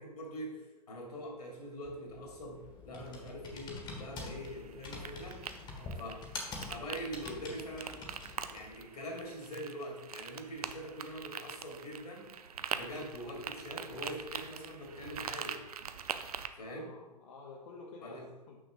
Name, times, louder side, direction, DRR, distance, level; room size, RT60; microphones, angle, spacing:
voice 1, 0.0-5.4 6.0-6.2 6.7-8.0 8.5-12.3 12.7-15.6 16.5-16.9 18.0-18.2, equal, 70° left, -1 dB, 2.4 m, -43 dB
Computer keyboard, 1.8-8.8, left 3 dB, 20° left, 1.4 m, -46 dB
sound 1, 4.4-16.5, right 7 dB, 65° right, 0.5 m, -44 dB
voice 2, 5.7-6.2 16.7-18.6, left 3 dB, 50° left, -2 dB, 1.1 m, -51 dB
6.5 x 6.1 x 3.7 m, 1.1 s
figure-of-eight pair, 105°, 21 cm